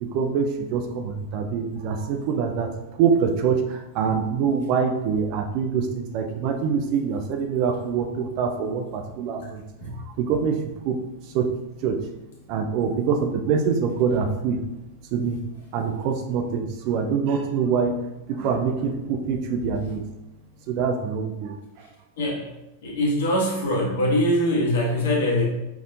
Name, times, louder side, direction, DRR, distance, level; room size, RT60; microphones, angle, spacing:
voice 1, 0.0-9.6 9.9-12.1 12.5-14.7 15.1-15.4 15.7-18.0 18.3-20.0 20.7-21.6, right 6 dB, 45° right, 4 dB, 0.5 m, -25 dB
voice 2, 22.2-22.5 22.8-25.4, left 1 dB, 60° left, -2 dB, 1.4 m, -22 dB
5.7 x 3.5 x 2.5 m, 0.96 s
figure-of-eight pair, 90°, 0 cm